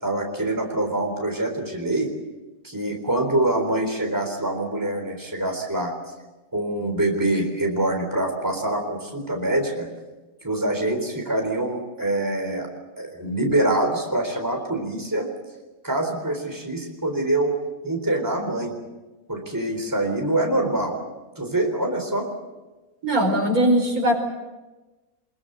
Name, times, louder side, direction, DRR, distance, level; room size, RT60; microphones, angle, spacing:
voice 1, 0.0-2.1 2.6-5.9 6.5-9.9 10.4-12.7 13.0-15.3 15.8-17.5 17.8-18.7 19.3-21.0 21.4-22.3, right 1 dB, 15° right, 3 dB, 3.9 m, -25 dB
voice 2, 23.0-24.2, right 1 dB, 85° right, 1 dB, 5.3 m, -20 dB
23.5 x 22.5 x 8.1 m, 1.1 s
omnidirectional pair, 1.5 m